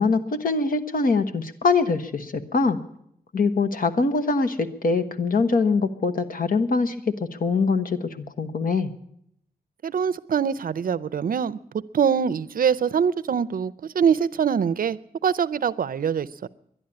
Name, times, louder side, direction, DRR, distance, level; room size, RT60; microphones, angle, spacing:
voice 1, 0.0-2.8 3.3-7.1 7.4-8.9, left 4 dB, 65° left, 7 dB, 1.1 m, -23 dB
voice 2, 9.8-16.5, right 7 dB, 65° right, 19 dB, 0.5 m, -24 dB
11.5 x 11.0 x 9.8 m, 0.73 s
wide cardioid pair, 100°, 16 cm